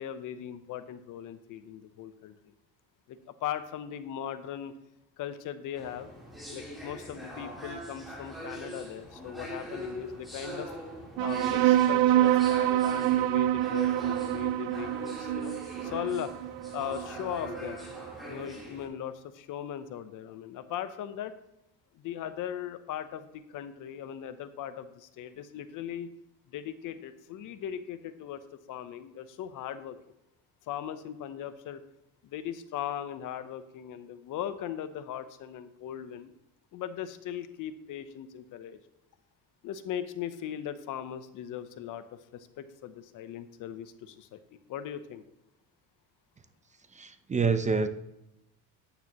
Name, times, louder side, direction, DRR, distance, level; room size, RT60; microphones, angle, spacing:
voice 1, 0.0-2.3 3.1-4.7 5.2-6.1 6.5-10.7 11.2-15.5 15.8-16.3 16.7-17.8 18.2-21.3 21.9-26.1 26.5-28.4 28.7-30.0 30.7-31.8 32.2-36.3 36.7-38.8 39.6-44.4 44.7-45.2, left 10 dB, 60° left, 12 dB, 0.8 m, -38 dB
sound 1, 5.7-18.9, equal, ahead, 3.5 m, -43 dB
sound 2, 11.2-18.1, right 13 dB, 75° right, 0.5 m, -26 dB
voice 2, 46.9-47.9, right 5 dB, 20° right, 10 dB, 0.6 m, -27 dB
9.5 x 9.0 x 3.0 m, 0.87 s
cardioid pair, 115°, 35 cm